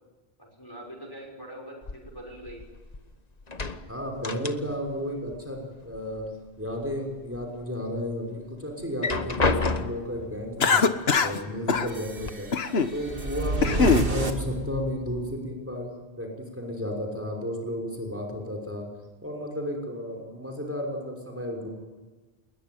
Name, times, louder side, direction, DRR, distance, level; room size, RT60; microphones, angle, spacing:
voice 1, 0.4-2.7, right 1 dB, 20° left, 2 dB, 5.8 m, -43 dB
sound 1, 1.8-3.1 3.4-5.0 5.3-6.3 6.7-7.5 7.9-8.0 8.8-10.2 11.2-11.3 11.7-12.3, left 3 dB, 40° left, 1.4 m, -31 dB
voice 2, 3.9-6.3 6.6-10.8 11.2-12.5 12.9-15.9 16.2-18.9 19.2-21.7, equal, 15° right, 2 dB, 5.7 m, -33 dB
Cough, 10.6-11.4 11.7-11.9 12.5-12.9 13.4-14.1, left 5 dB, 75° left, 1.5 m, -22 dB
sound 2, 11.9-15.3, right 2 dB, 60° right, 2.9 m, -31 dB
28.0 x 21.5 x 9.5 m, 1.2 s
omnidirectional pair, 1.1 m